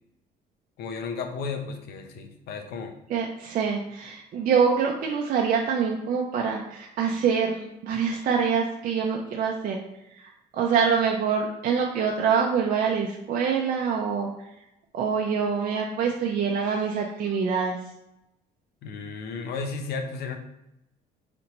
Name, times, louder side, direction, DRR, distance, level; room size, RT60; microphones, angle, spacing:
voice 1, 0.8-2.9 18.8-20.4, left 4 dB, 70° left, 6 dB, 0.6 m, -33 dB
voice 2, 3.1-9.8 10.1-14.3 14.9-17.8, right 6 dB, 55° right, 0 dB, 0.5 m, -25 dB
3.9 x 3.4 x 3.0 m, 0.87 s
cardioid pair, 110°, 17 cm